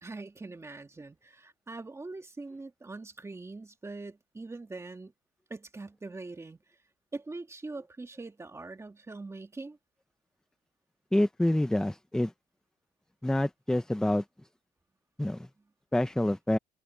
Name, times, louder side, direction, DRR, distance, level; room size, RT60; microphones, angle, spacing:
voice 1, 0.0-5.1 5.5-6.6 7.1-9.8, right 3 dB, 15° right, 1.9 m, -42 dB
voice 2, 11.1-12.3 13.2-14.2 15.2-15.5 15.9-16.6, left 1 dB, 5° left, 0.6 m, -27 dB
cardioid pair, 110°, 17 cm